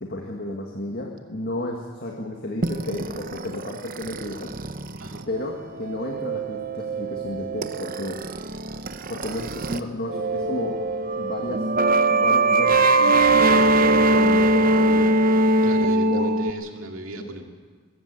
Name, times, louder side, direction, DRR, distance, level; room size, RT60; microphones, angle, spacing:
voice 1, 0.0-4.5 5.3-8.2 9.1-10.8 11.2-11.7 12.1-15.2 16.1-16.3 17.2-17.3, left 1 dB, 45° left, 1 dB, 1.9 m, -32 dB
sound 1, 2.6-9.8 10.1-16.5, right 2 dB, 40° right, 0.8 m, -22 dB
voice 2, 15.6-17.4, right 1 dB, 75° right, 2 dB, 2.5 m, -36 dB
21.0 x 15.0 x 8.4 m, 1.5 s
head